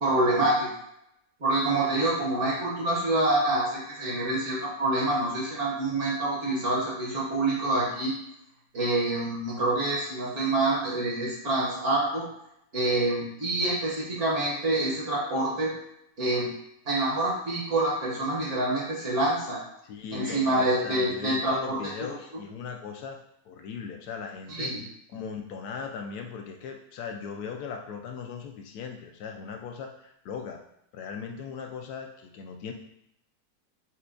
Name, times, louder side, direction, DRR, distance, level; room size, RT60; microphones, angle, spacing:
voice 1, 0.0-0.7 1.4-8.1 8.7-12.2 12.7-15.7 16.2-16.5 16.8-19.6 20.1-21.8 24.5-24.8, right 2 dB, 55° right, -5 dB, 1.2 m, -26 dB
voice 2, 19.8-23.2 23.4-24.8 25.1-30.6 30.9-32.7, left 6 dB, 80° left, 3 dB, 1.1 m, -38 dB
5.6 x 2.2 x 2.5 m, 0.76 s
omnidirectional pair, 1.7 m